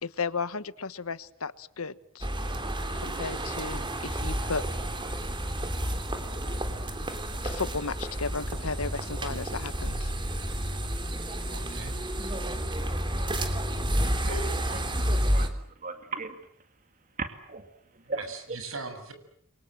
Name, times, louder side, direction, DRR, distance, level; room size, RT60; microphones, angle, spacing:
voice 1, 0.0-2.3 2.9-4.6 7.4-10.1, left 4 dB, 85° left, 15 dB, 1.3 m, -34 dB
sound 1, 2.2-15.5, right 1 dB, 25° right, 3.4 m, -30 dB
voice 2, 11.5-12.0 13.3-13.5 14.3-14.6 18.0-19.1, right 2 dB, 70° right, 7 dB, 7.1 m, -39 dB
voice 3, 15.1-16.4 17.2-18.6, right 3 dB, 40° right, 7 dB, 2.3 m, -37 dB
29.5 x 24.0 x 7.7 m, 0.65 s
head